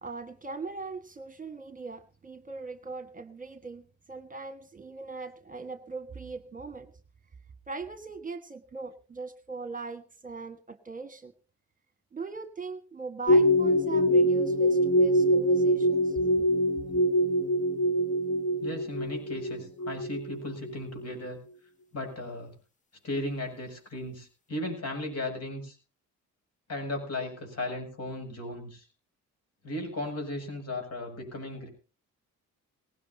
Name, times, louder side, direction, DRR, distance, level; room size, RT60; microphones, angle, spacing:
voice 1, 0.0-6.9 7.7-11.3 12.1-16.4, right 4 dB, 25° right, 9 dB, 1.4 m, -40 dB
sound 1, 13.3-20.7 21.0-21.1, equal, 25° left, 0.9 m, -24 dB
voice 2, 18.6-21.4 21.9-22.5 23.0-25.8 26.7-28.9 29.6-31.7, left 1 dB, 55° left, 4 dB, 7.4 m, -36 dB
19.0 x 17.0 x 2.8 m, 0.35 s
cardioid pair, 90°, 30 cm